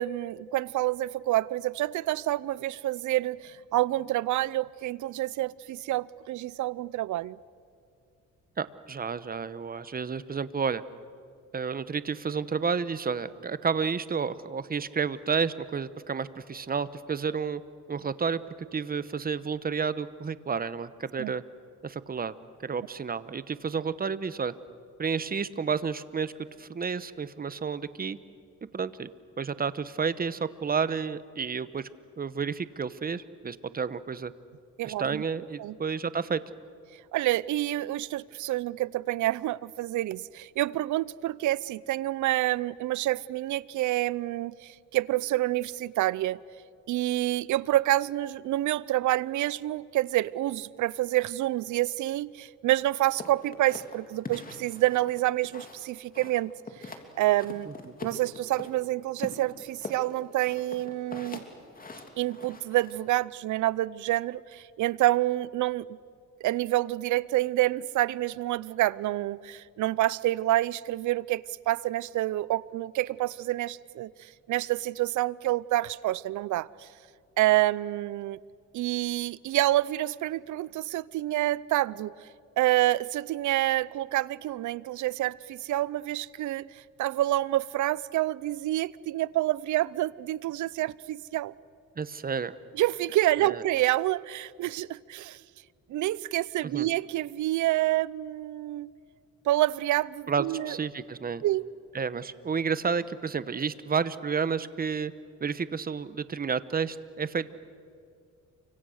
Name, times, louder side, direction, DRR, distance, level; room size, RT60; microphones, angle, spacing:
voice 1, 0.0-7.4 21.2-21.3 34.8-35.2 35.6-35.7 37.1-46.4 46.9-56.5 56.8-57.7 58.0-61.4 62.2-65.9 66.4-76.9 77.4-78.4 78.7-82.1 82.6-91.5 92.7-95.4 95.9-98.9 99.5-100.8 101.4-101.7, right 15 dB, 75° right, 0.6 m, -28 dB
voice 2, 8.6-10.8 11.5-17.6 17.9-18.4 18.7-21.4 21.8-22.3 22.6-24.5 25.0-26.3 26.6-28.2 28.7-29.1 29.4-31.9 32.2-34.3 34.8-36.4 57.7-57.9 92.0-92.6 93.4-93.6 96.6-96.9 100.3-101.4 101.9-105.1 105.4-107.5, right 6 dB, 30° right, 1.0 m, -31 dB
sound 1, 53.2-55.9 56.1-57.1 57.4-58.7 59.2-63.0, left 3 dB, 30° left, 3.1 m, -42 dB
29.5 x 25.0 x 6.5 m
cardioid pair, 90°, 30 cm